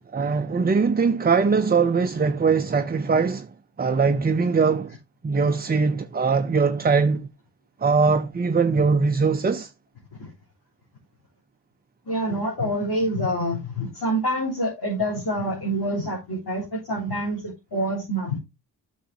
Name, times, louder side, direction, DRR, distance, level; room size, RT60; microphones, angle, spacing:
voice 1, 0.1-3.5 3.8-4.9 5.2-7.3 7.8-9.7, right 5 dB, 25° right, 0.5 m, -21 dB
voice 2, 12.1-18.4, equal, 65° left, 3.8 m, -26 dB
9.9 x 6.3 x 2.9 m
cardioid pair, 55°, 42 cm